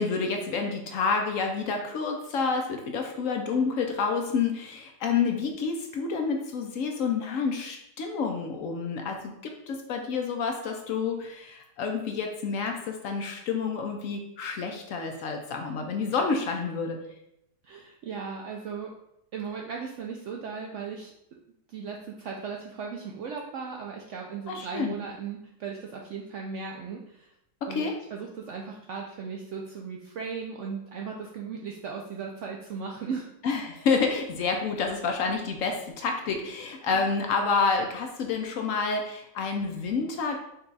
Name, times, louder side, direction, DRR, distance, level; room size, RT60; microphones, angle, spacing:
voice 1, 0.0-17.0 24.5-25.0 27.6-28.0 33.4-40.4, left 5 dB, 70° left, 3 dB, 0.8 m, -29 dB
voice 2, 17.6-18.9 19.3-21.1 21.7-27.3 27.7-27.9 28.1-33.3 36.9-37.1, right 5 dB, 85° right, 0 dB, 0.6 m, -37 dB
5.3 x 2.3 x 3.9 m, 0.79 s
omnidirectional pair, 1.8 m